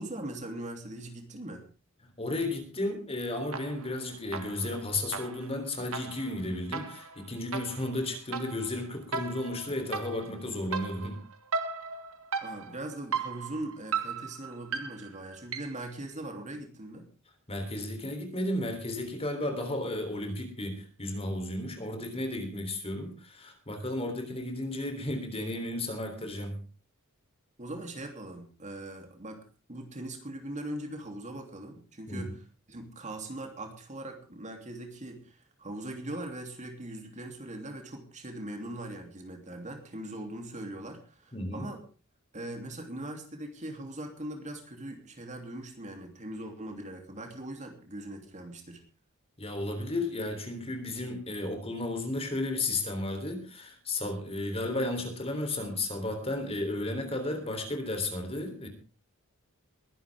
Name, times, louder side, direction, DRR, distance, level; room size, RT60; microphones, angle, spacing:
voice 1, 0.0-1.7 12.4-17.1 27.6-29.4 29.7-32.4 32.7-41.8 42.3-48.8, right 1 dB, 35° right, 4 dB, 3.0 m, -40 dB
voice 2, 2.2-11.2 17.5-26.6 32.1-32.2 41.3-41.7 49.4-58.7, left 2 dB, 25° left, 6 dB, 3.5 m, -33 dB
sound 1, 3.5-4.0 4.3-15.9, right 5 dB, 70° right, 1.9 m, -37 dB
22.0 x 11.0 x 3.6 m, 0.35 s
head